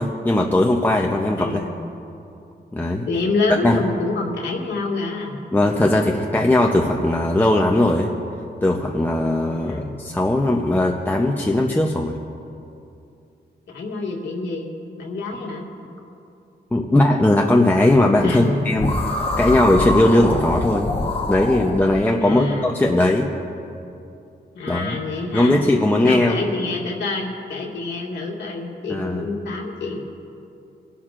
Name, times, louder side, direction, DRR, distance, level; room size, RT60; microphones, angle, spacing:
voice 1, 0.0-1.6 2.7-3.1 3.6-3.8 5.5-8.1 8.6-12.2 16.7-19.0 19.4-20.9 21.3-23.3 24.7-25.0 25.3-26.4 28.9-29.2, left 1 dB, 10° left, 0 dB, 0.7 m, -18 dB
voice 2, 1.4-1.7 3.1-5.4 9.5-10.0 13.7-14.7 15.0-15.7 18.2-18.9 22.2-22.7 24.5-25.6 26.0-30.0, left 3 dB, 90° left, -2 dB, 2.0 m, -27 dB
sound 1, 18.8-22.0, left 2 dB, 30° left, 1.2 m, -24 dB
26.0 x 12.0 x 2.5 m, 2.7 s
wide cardioid pair, 150°, 18 cm